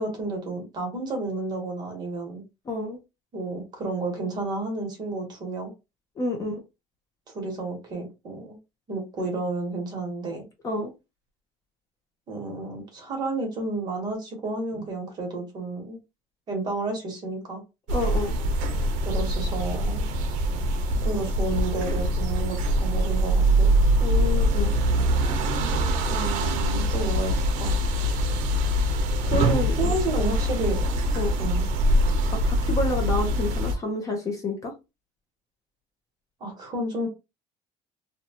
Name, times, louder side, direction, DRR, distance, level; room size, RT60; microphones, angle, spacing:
voice 1, 0.0-2.4 3.3-5.7 7.3-8.6 8.9-10.4 12.3-16.0 16.5-17.6 19.0-20.1 21.0-23.7 26.1-28.1 29.8-30.9 31.4-31.7 36.4-37.1, right 2 dB, 30° right, 1.0 m, -31 dB
voice 2, 2.7-3.0 6.2-6.6 10.6-10.9 17.9-18.3 24.0-24.8 29.3-29.9 31.2-31.3 32.3-34.7, left 2 dB, 25° left, 0.5 m, -29 dB
sound 1, 17.9-33.7, right 1 dB, 65° right, 0.6 m, -23 dB
2.7 x 2.2 x 2.8 m
cardioid pair, 175°, 14 cm